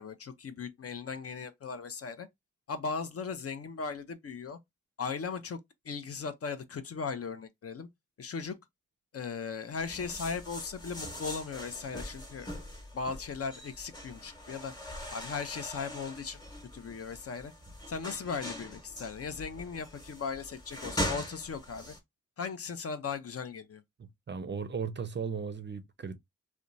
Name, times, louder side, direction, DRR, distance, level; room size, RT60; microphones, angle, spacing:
voice 1, 0.0-2.3 2.7-4.6 5.0-5.6 5.8-7.9 8.2-8.6 9.1-12.5 12.9-14.7 15.1-16.4 16.7-17.5 17.9-22.0 22.4-23.8, left 5 dB, 50° left, 0.5 m, -37 dB
sound 1, 9.8-22.0, left 1 dB, 15° left, 1.0 m, -41 dB
voice 2, 24.0-26.2, right 6 dB, 35° right, 0.4 m, -36 dB
2.8 x 2.2 x 2.5 m
cardioid pair, 50°, 31 cm